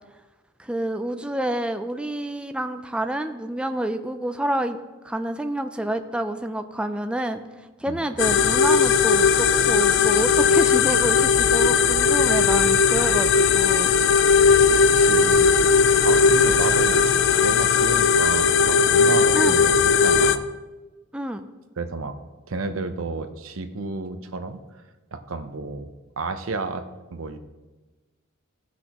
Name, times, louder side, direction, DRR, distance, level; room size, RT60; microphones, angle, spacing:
voice 1, 0.6-4.8 5.0-7.4 7.8-13.9 19.3-19.5 21.1-21.4, right 1 dB, 5° right, 7 dB, 0.4 m, -28 dB
sound 1, 8.2-20.4, left 5 dB, 65° left, 0.4 m, -18 dB
voice 2, 14.3-17.1 17.4-20.5 21.8-22.2 22.5-24.6 25.1-25.9 26.2-27.4, right 3 dB, 90° right, 8 dB, 0.8 m, -32 dB
17.0 x 6.1 x 3.0 m, 1.2 s
head